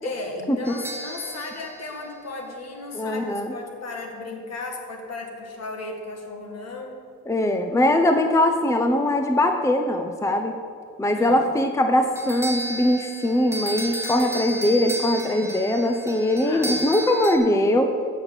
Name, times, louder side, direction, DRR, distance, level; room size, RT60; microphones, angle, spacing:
voice 1, 0.0-7.0 11.1-11.5 16.4-16.9, left 3 dB, 55° left, 2 dB, 1.9 m, -35 dB
sound 1, 0.6-2.9 12.2-17.4, equal, 10° right, 1.3 m, -33 dB
voice 2, 2.9-3.5 7.3-10.6 11.0-17.9, left 1 dB, 10° left, 6 dB, 0.6 m, -21 dB
8.4 x 6.3 x 7.4 m, 2.2 s
cardioid pair, 90°, 30 cm